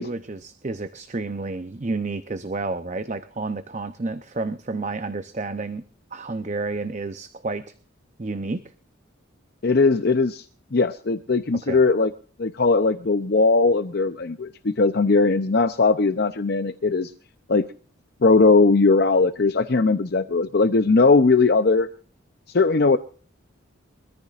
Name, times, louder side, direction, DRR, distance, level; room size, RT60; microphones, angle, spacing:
voice 1, 0.0-5.8 6.1-7.6 8.2-8.6 11.5-11.8, right 3 dB, 35° right, 9 dB, 0.7 m, -30 dB
voice 2, 9.6-10.4 10.7-12.1 12.4-17.1 17.5-17.7 18.2-21.9 22.5-23.0, left 3 dB, 50° left, 10 dB, 0.6 m, -19 dB
24.0 x 14.0 x 2.5 m, 0.40 s
head